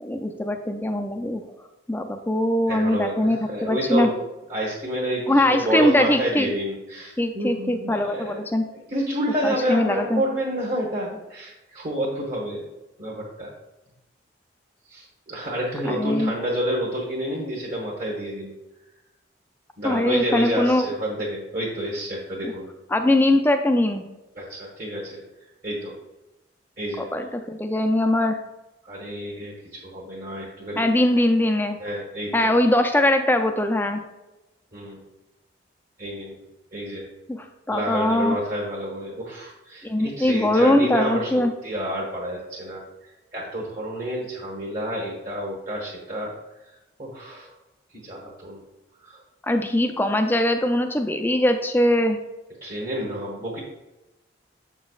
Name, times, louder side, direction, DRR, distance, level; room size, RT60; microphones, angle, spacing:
voice 1, 0.0-1.5 1.9-4.1 5.3-6.5 7.2-8.6 9.4-10.2 15.9-16.3 19.8-20.8 22.4-22.5 22.9-24.0 27.0-28.4 30.8-31.8 32.3-34.0 37.3-38.4 39.8-41.5 49.4-52.2, left 1 dB, 10° left, 6 dB, 0.4 m, -21 dB
voice 2, 2.7-4.1 4.5-8.4 8.7-12.6 13.0-13.5 14.9-18.5 19.8-22.7 24.3-25.2 25.6-26.0 26.8-27.1 28.8-30.9 31.8-32.5 34.7-35.0 36.0-36.4 36.7-37.1 37.7-46.3 47.0-47.5 48.0-48.6 49.0-49.2 52.6-53.6, equal, 45° right, -4 dB, 1.3 m, -29 dB
7.1 x 6.1 x 2.4 m, 1.0 s
head